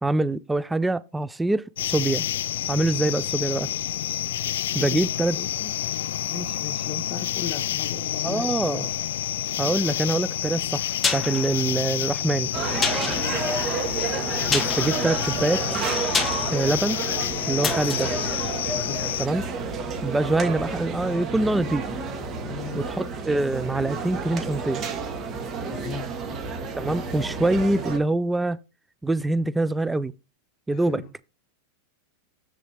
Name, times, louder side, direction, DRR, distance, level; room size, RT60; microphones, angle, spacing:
voice 1, 0.0-2.3 2.7-3.7 4.8-5.4 8.2-8.9 9.6-12.5 14.5-15.8 16.5-17.0 17.5-18.1 19.2-19.4 20.0-21.9 22.8-24.8 26.8-28.6 29.0-30.1 30.7-31.0, right 2 dB, 10° right, 0.3 m, -24 dB
sound 1, 1.8-19.3, left 12 dB, 85° left, 0.3 m, -29 dB
voice 2, 4.5-5.8 6.2-8.9 13.1-13.6 17.6-17.8 18.9-19.1 22.4-22.8 25.7-26.1 30.7-31.1, left 6 dB, 40° left, 1.2 m, -37 dB
sound 2, 11.0-19.5 19.8-19.9, left 4 dB, 15° left, 1.4 m, -31 dB
sound 3, 12.5-28.0, right 4 dB, 30° right, 1.5 m, -30 dB
7.5 x 6.9 x 3.4 m
supercardioid pair, 130°, 0 cm